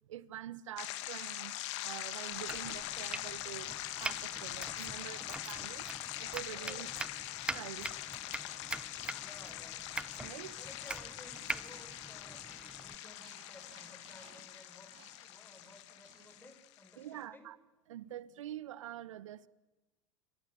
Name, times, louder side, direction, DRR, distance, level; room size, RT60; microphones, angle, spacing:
voice 1, 0.1-1.6 1.8-3.7 4.0-6.9 7.5-7.9 10.2-10.6 17.0-17.6 17.9-19.5, right 12 dB, 75° right, 1.2 m, -46 dB
sound 1, 0.8-16.9, left 15 dB, 65° left, 2.3 m, -43 dB
Domestic sounds home sounds, 2.3-13.0, right 2 dB, 5° right, 1.0 m, -44 dB
voice 2, 6.5-6.8 9.1-9.9 10.5-17.5, left 2 dB, 10° left, 4.8 m, -57 dB
sound 2, 10.5-16.5, right 7 dB, 35° right, 5.2 m, -63 dB
27.5 x 25.0 x 7.0 m
hypercardioid pair, 85°, 16 cm